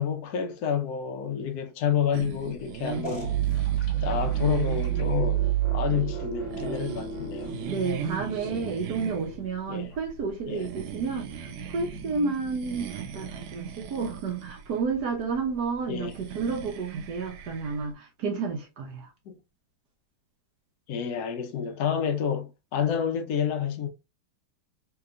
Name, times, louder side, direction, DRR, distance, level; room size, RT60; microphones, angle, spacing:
voice 1, 0.0-3.3 4.0-5.4 5.7-7.6 8.4-8.8 9.7-9.9 10.5-10.6 15.9-16.2 19.3-19.4 20.9-23.9, left 8 dB, 85° left, 0.8 m, -29 dB
sound 1, 2.1-17.9, right 7 dB, 90° right, 1.5 m, -39 dB
sound 2, 3.0-9.6, right 11 dB, 35° left, 1.3 m, -29 dB
voice 2, 7.6-19.1, right 5 dB, 65° right, 1.1 m, -31 dB
3.3 x 2.9 x 2.4 m
omnidirectional pair, 2.3 m